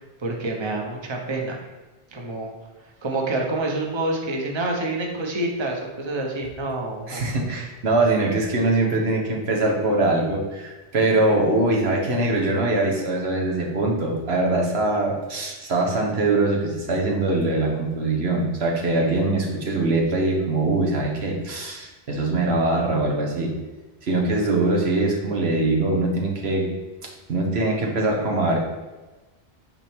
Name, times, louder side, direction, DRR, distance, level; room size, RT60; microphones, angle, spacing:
voice 1, 0.2-1.6 2.1-2.5 3.0-7.3, right 2 dB, 30° right, 0 dB, 0.9 m, -27 dB
voice 2, 7.1-23.6 24.0-26.7 27.0-28.6, right 2 dB, 75° right, -1 dB, 1.4 m, -22 dB
8.7 x 4.4 x 3.6 m, 1.2 s
omnidirectional pair, 1.1 m